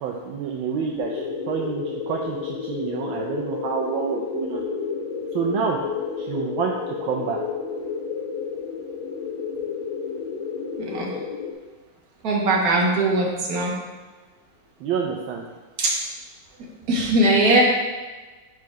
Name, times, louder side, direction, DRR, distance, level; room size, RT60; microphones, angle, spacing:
voice 1, 0.0-4.6 5.3-5.8 6.2-7.4 14.8-15.5, right 6 dB, 75° right, 0 dB, 1.4 m, -28 dB
sound 1, 1.0-11.5, left 5 dB, 80° left, 1.6 m, -31 dB
voice 2, 12.2-13.7 15.8-15.9 16.9-17.6, right 2 dB, 50° right, -2 dB, 1.6 m, -20 dB
4.9 x 4.6 x 5.9 m, 1.3 s
omnidirectional pair, 2.3 m